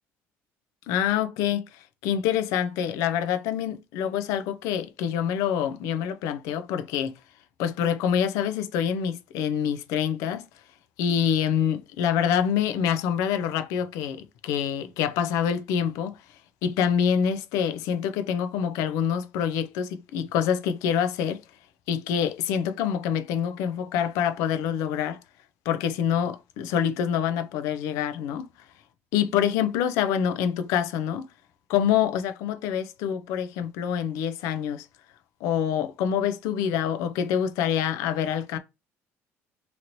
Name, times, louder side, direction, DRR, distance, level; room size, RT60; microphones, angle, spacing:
voice 1, 0.9-7.1 7.6-10.4 11.0-16.2 16.6-21.4 21.9-25.2 25.7-28.5 29.1-31.3 31.7-34.9 35.4-38.6, left 8 dB, 80° left, 0.4 m, -26 dB
3.0 x 2.8 x 2.6 m
cardioid pair, 170°, 5 cm